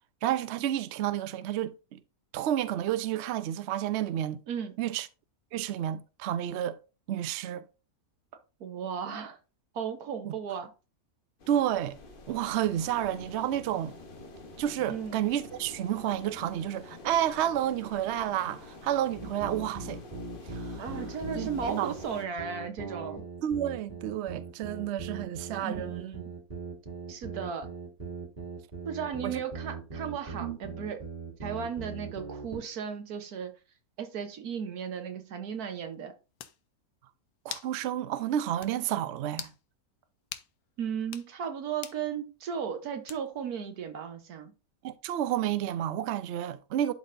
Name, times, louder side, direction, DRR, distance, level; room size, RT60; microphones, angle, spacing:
voice 1, 0.2-2.0 2.3-4.4 4.8-5.1 5.5-6.8 7.1-7.6 10.2-10.3 11.5-12.0 12.3-14.0 14.6-20.0 20.5-20.8 21.4-21.9 23.4-26.1 29.2-29.4 30.4-30.6 37.4-39.5 44.8-46.9, right 11 dB, 65° right, 0.7 m, -30 dB
voice 2, 4.5-4.8 8.6-9.4 9.7-10.7 14.9-15.2 20.8-23.2 25.6-26.3 27.1-27.7 28.8-31.0 31.4-33.5 34.0-36.1 40.8-44.5, right 7 dB, 85° right, 1.5 m, -35 dB
sound 1, 11.4-22.3, left 3 dB, 40° left, 1.1 m, -48 dB
sound 2, 19.1-32.7, right 4 dB, 30° right, 2.1 m, -40 dB
sound 3, 35.9-36.0 36.4-36.6 37.5-37.8 38.1-38.2 38.6-38.8 39.3-39.6 40.3-40.5 41.0-41.3 41.8-42.0 43.1-43.4, left 10 dB, 85° left, 1.2 m, -41 dB
11.5 x 4.2 x 2.6 m
omnidirectional pair, 1.6 m